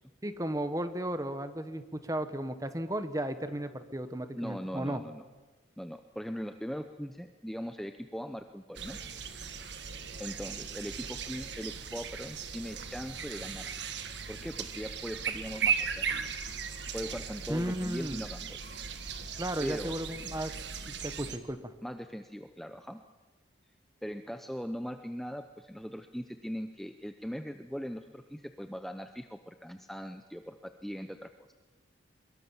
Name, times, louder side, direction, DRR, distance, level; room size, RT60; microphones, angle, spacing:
voice 1, 0.2-5.0 17.5-18.2 19.4-20.5 20.9-21.7, right 1 dB, 15° right, 10 dB, 1.3 m, -34 dB
voice 2, 4.3-5.2 5.8-9.0 10.2-13.7 14.3-16.1 16.9-18.6 19.6-20.0 21.8-23.0 24.0-31.3, equal, ahead, 7 dB, 0.7 m, -40 dB
sound 1, 8.7-21.4, right 6 dB, 65° right, 1.6 m, -37 dB
23.5 x 22.5 x 7.3 m, 1.2 s
head